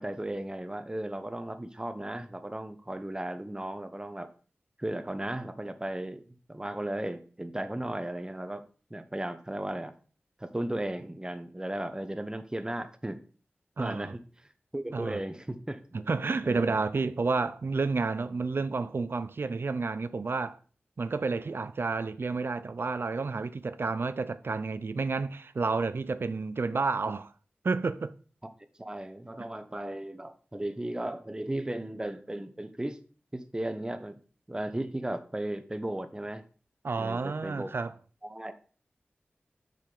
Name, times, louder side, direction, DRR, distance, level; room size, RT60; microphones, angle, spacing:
voice 1, 0.0-4.3 4.8-8.6 8.9-9.9 10.4-13.2 13.8-14.2 14.7-15.8 16.4-16.7 28.8-33.0 33.3-34.2 34.5-36.4 37.0-37.7 38.2-38.5, right 1 dB, 20° right, 0.9 m, -35 dB
voice 2, 13.8-14.1 14.9-15.2 15.9-20.6 21.0-27.3 27.6-28.1 36.8-37.9, right 4 dB, 65° right, 0.5 m, -30 dB
7.3 x 5.1 x 3.8 m
wide cardioid pair, 55°, 4 cm